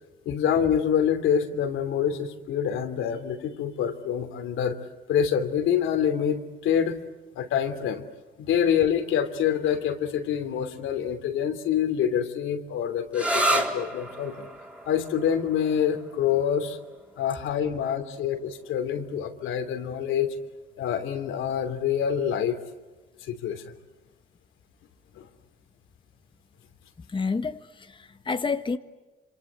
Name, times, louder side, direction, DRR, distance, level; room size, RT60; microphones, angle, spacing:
voice 1, 0.2-4.8 5.1-7.0 7.4-8.0 8.4-14.5 14.9-16.8 17.2-20.3 20.8-22.6 23.3-23.6 25.1-25.3, left 8 dB, 85° left, 7 dB, 2.9 m, -26 dB
sound 1, 13.1-20.5, right 1 dB, 5° right, 4.2 m, -33 dB
voice 2, 27.1-28.8, left 4 dB, 25° left, 8 dB, 1.4 m, -29 dB
27.0 x 27.0 x 8.2 m, 1.2 s
cardioid pair, 90°, 20 cm